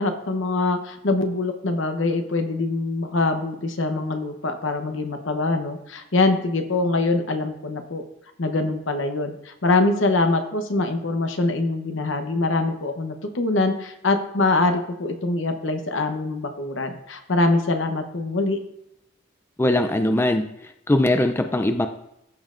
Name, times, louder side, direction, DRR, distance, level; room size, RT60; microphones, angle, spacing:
voice 1, 0.0-8.0 8.4-18.6, left 2 dB, 75° left, 6 dB, 1.0 m, -24 dB
voice 2, 19.6-20.5 20.9-21.9, left 1 dB, 10° left, 7 dB, 0.4 m, -20 dB
14.0 x 5.3 x 2.5 m, 0.83 s
head